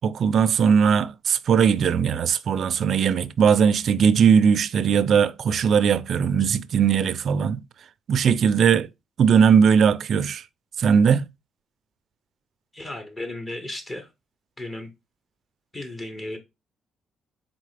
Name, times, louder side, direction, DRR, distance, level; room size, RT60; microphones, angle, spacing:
voice 1, 0.0-7.6 8.1-8.9 9.2-10.4 10.8-11.2, right 7 dB, 60° right, 0.3 m, -19 dB
voice 2, 12.7-14.1 14.6-14.9 15.7-16.4, left 1 dB, 30° left, 1.0 m, -34 dB
4.0 x 3.7 x 3.3 m
cardioid pair, 90°, 0 cm